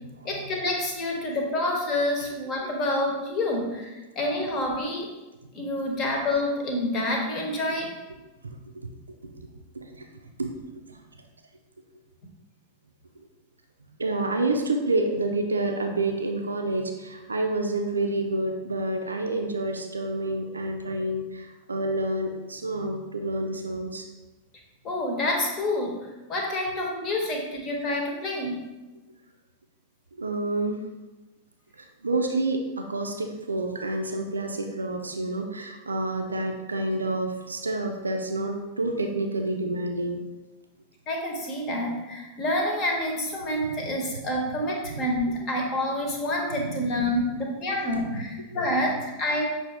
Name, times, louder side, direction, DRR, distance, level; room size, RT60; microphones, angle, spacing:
voice 1, 0.2-5.1 5.5-7.9 24.8-26.0 26.3-28.6 41.1-49.4, left 1 dB, 35° left, 0 dB, 1.1 m, -28 dB
voice 2, 9.7-10.1 10.4-10.5 10.9-11.0 14.0-24.1 30.2-30.8 31.8-40.2 43.6-43.7 44.7-45.0 46.6-46.8 47.1-47.3 48.1-48.2 48.5-48.6, right 2 dB, 75° right, 3 dB, 0.4 m, -28 dB
6.0 x 2.7 x 3.3 m, 1.1 s
figure-of-eight pair, 90°, 0 cm